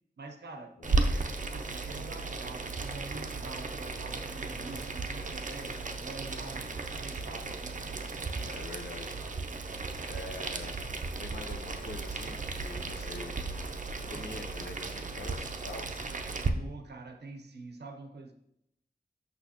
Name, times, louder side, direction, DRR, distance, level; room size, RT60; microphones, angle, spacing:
voice 1, 0.2-7.8 16.5-18.3, right 3 dB, 90° right, 4 dB, 0.7 m, -46 dB
Boiling, 0.8-16.5, right 3 dB, 50° right, 0.5 m, -35 dB
voice 2, 8.4-9.3 10.0-10.7 11.2-13.4 14.1-15.9, left 2 dB, 85° left, 3 dB, 0.8 m, -44 dB
6.2 x 5.8 x 2.9 m, 0.78 s
wide cardioid pair, 80°, 17 cm